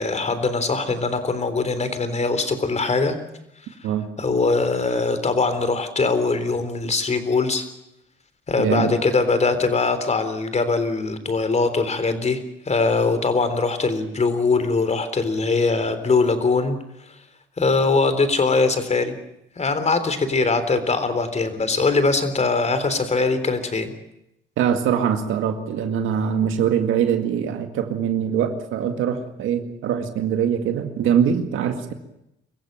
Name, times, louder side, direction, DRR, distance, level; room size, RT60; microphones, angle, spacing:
voice 1, 0.0-3.2 4.2-7.7 8.5-16.8 17.6-19.1 19.6-23.9, left 3 dB, 35° left, 10 dB, 3.7 m, -21 dB
voice 2, 8.6-8.9 24.6-31.9, right 8 dB, 85° right, 7 dB, 2.0 m, -23 dB
24.5 x 15.5 x 9.0 m, 0.84 s
cardioid pair, 90°, 20 cm